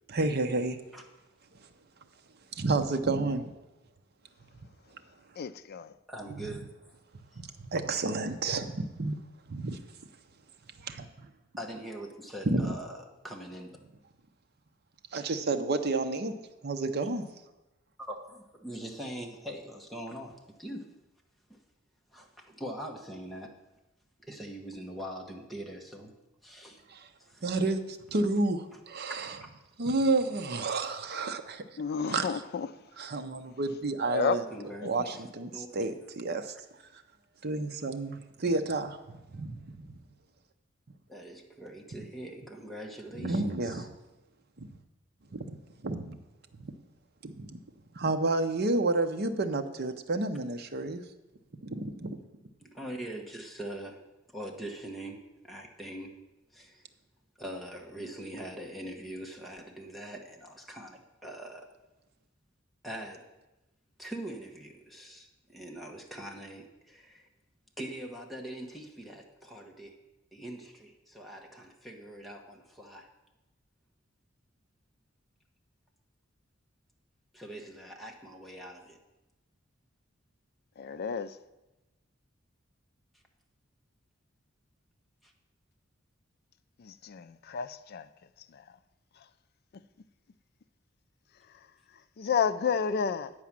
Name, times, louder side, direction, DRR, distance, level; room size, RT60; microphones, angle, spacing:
voice 1, 0.1-0.8 2.5-3.5 7.4-9.2 9.5-9.8 10.8-11.1 12.5-12.7 15.1-16.3 16.6-17.2 26.9-27.1 27.4-29.4 29.8-31.6 32.1-32.4 33.0-34.4 34.8-36.5 36.9-37.0 37.4-39.0 39.3-39.9 43.2-43.9 44.6-44.8 45.3-45.6 45.8-46.2 47.2-47.6 47.9-51.0 51.6-52.2, right 2 dB, 55° right, 0.7 m, -30 dB
voice 2, 5.4-5.9 31.8-32.7 34.0-34.4 80.8-81.3 86.8-88.1 92.2-93.3, left 6 dB, 50° left, 0.4 m, -31 dB
voice 3, 6.1-6.9 11.6-13.7 18.0-20.8 21.5-21.6 22.1-23.5 24.2-26.1 26.4-26.8 27.2-27.5 34.5-35.1 35.5-35.9 41.1-43.8 52.7-54.0 54.3-55.2 55.4-56.1 56.5-56.8 57.4-61.6 62.8-63.2 64.0-67.3 67.8-70.0 70.3-73.1 77.3-79.0 85.2-85.3, right 1 dB, ahead, 1.1 m, -42 dB
9.4 x 4.8 x 7.3 m
head